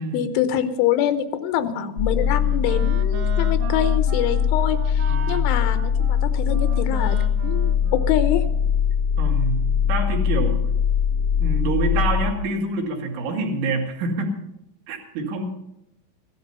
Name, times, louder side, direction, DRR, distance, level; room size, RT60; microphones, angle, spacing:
voice 1, 0.0-7.2 7.4-8.4, left 10 dB, 80° left, 10 dB, 3.1 m, -25 dB
Wind instrument woodwind instrument, 1.7-8.8, right 7 dB, 85° right, 3.8 m, -38 dB
sound 1, 2.0-12.3, left 7 dB, 55° left, 1.0 m, -21 dB
voice 2, 5.1-5.5 9.2-10.7 11.4-14.3 14.9-15.5, right 3 dB, 70° right, 1 dB, 4.2 m, -27 dB
16.0 x 13.0 x 5.5 m, 0.83 s
omnidirectional pair, 5.7 m